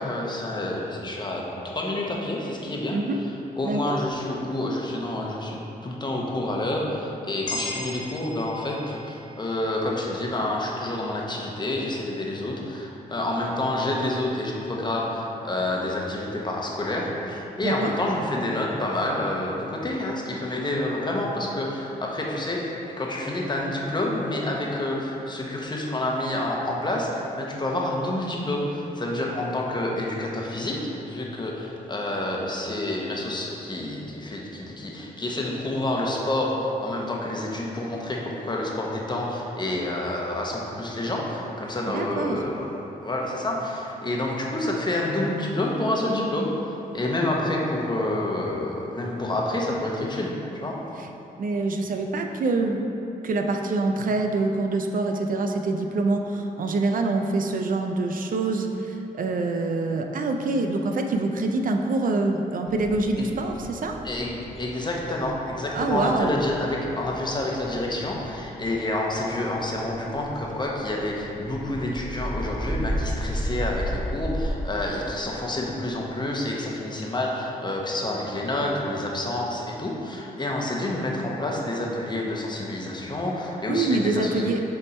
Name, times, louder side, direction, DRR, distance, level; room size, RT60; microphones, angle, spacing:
voice 1, 0.0-3.0 3.5-5.6 5.8-42.7 43.0-46.5 46.9-50.8 63.2-63.3 64.0-84.6, left 1 dB, 25° left, -2 dB, 1.0 m, -28 dB
voice 2, 3.6-4.0 17.6-17.9 41.9-42.4 51.0-51.1 51.4-52.8 53.2-64.0 65.7-66.4 83.7-84.6, right 3 dB, 60° right, 4 dB, 0.5 m, -25 dB
sound 1, 7.5-11.7, left 2 dB, 55° left, 0.7 m, -39 dB
sound 2, 62.7-74.5, equal, ahead, 0.9 m, -34 dB
6.8 x 3.5 x 4.3 m, 2.8 s
cardioid pair, 75°, 16 cm